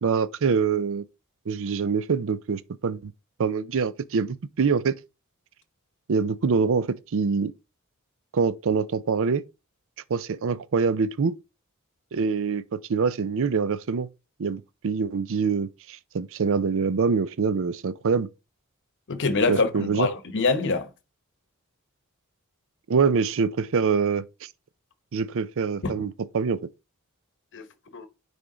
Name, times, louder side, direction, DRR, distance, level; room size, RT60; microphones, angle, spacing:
voice 1, 0.0-1.0 1.5-3.1 3.4-5.0 6.1-7.5 8.3-9.4 10.1-11.4 12.1-14.1 14.4-18.3 19.5-20.1 22.9-24.5 25.1-26.7, right 5 dB, 65° right, 0.5 m, -25 dB
voice 2, 19.1-20.9 25.8-26.0 27.5-27.7 27.9-28.1, left 3 dB, 55° left, 0.9 m, -25 dB
9.7 x 3.5 x 3.8 m
head